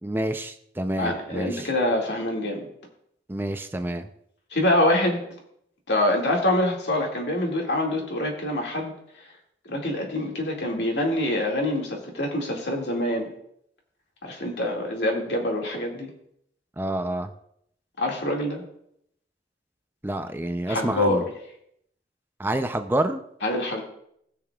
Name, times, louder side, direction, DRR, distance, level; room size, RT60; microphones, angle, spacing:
voice 1, 0.0-1.7 3.3-4.1 16.8-17.3 20.0-21.2 22.4-23.2, right 1 dB, 10° right, 7 dB, 0.5 m, -28 dB
voice 2, 1.0-2.6 4.5-5.2 5.9-8.9 9.7-13.3 14.2-16.1 18.0-18.6 20.7-21.2 23.4-23.8, left 1 dB, 80° left, 0 dB, 2.1 m, -25 dB
20.0 x 6.8 x 2.3 m, 0.73 s
head